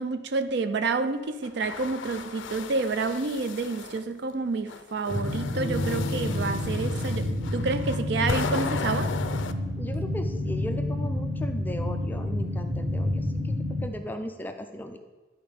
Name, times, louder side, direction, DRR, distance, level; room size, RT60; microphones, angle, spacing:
voice 1, 0.0-9.1, right 3 dB, 60° right, 0.4 m, -29 dB
sound 1, 1.4-4.0 4.7-9.5, left 5 dB, 75° left, 0.4 m, -36 dB
sound 2, 5.1-13.9, left 1 dB, 5° right, 0.8 m, -29 dB
Bass guitar, 5.5-9.9, right 1 dB, 30° right, 2.8 m, -41 dB
voice 2, 9.8-15.0, equal, 10° left, 0.4 m, -37 dB
10.5 x 4.3 x 5.1 m
head